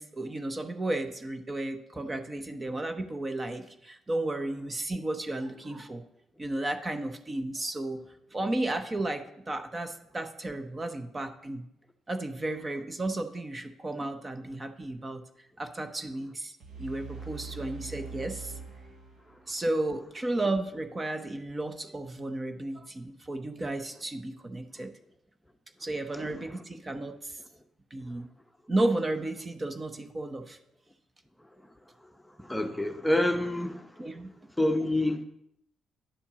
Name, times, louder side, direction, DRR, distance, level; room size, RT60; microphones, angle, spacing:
voice 1, 0.0-6.0 6.4-8.0 8.3-11.7 12.1-15.2 15.6-16.5 16.8-18.5 19.5-24.9 25.8-27.4 27.9-28.3 28.7-30.6 34.0-34.3, right 2 dB, 25° right, 0.8 m, -33 dB
sound 1, 16.6-19.6, right 4 dB, 70° right, 1.8 m, -43 dB
voice 2, 32.4-33.9 34.6-35.2, left 1 dB, 5° left, 0.8 m, -27 dB
10.0 x 4.3 x 7.3 m
cardioid pair, 90°, 0 cm